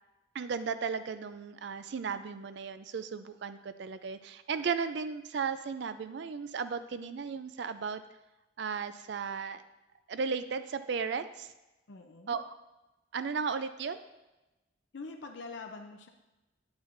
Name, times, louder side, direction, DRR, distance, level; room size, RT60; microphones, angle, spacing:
voice 1, 0.3-8.0 8.6-9.6 10.1-11.5 12.3-12.6 13.1-14.0, right 5 dB, 55° right, 11 dB, 0.4 m, -35 dB
voice 2, 11.9-12.4 14.9-16.1, left 3 dB, 60° left, 5 dB, 0.6 m, -44 dB
9.6 x 8.0 x 2.6 m, 1.0 s
head